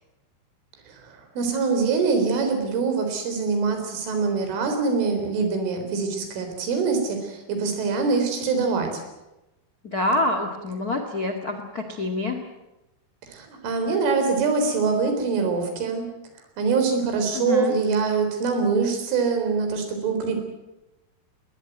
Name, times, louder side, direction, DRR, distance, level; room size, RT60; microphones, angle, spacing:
voice 1, 0.9-9.0 13.3-16.1 16.6-20.4, right 4 dB, 80° right, 6 dB, 6.5 m, -24 dB
voice 2, 9.8-12.4 17.3-17.8, left 2 dB, 70° left, 6 dB, 0.8 m, -26 dB
21.0 x 20.5 x 9.4 m, 0.97 s
omnidirectional pair, 5.5 m